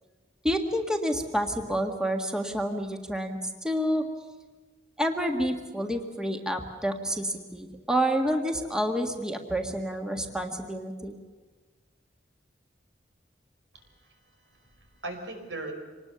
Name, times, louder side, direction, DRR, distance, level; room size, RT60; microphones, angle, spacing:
voice 1, 0.4-4.0 5.0-11.1, equal, 5° right, 4 dB, 1.7 m, -29 dB
voice 2, 13.7-14.2 14.5-15.7, right 2 dB, 85° right, 4 dB, 5.1 m, -40 dB
25.5 x 20.0 x 6.9 m, 1.4 s
head